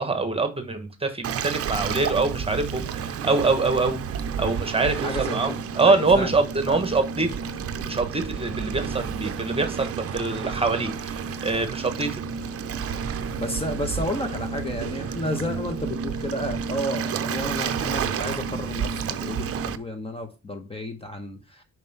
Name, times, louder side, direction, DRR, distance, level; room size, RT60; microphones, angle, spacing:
voice 1, 0.0-4.0 4.4-7.3 7.8-12.3, right 3 dB, 20° right, 1.3 m, -24 dB
Waves surf, 1.2-19.8, right 6 dB, 50° right, 0.6 m, -30 dB
voice 2, 5.0-6.3 6.7-6.8 13.4-21.6, left 1 dB, 20° left, 1.1 m, -32 dB
5.3 x 4.7 x 5.4 m
cardioid pair, 90°, 30 cm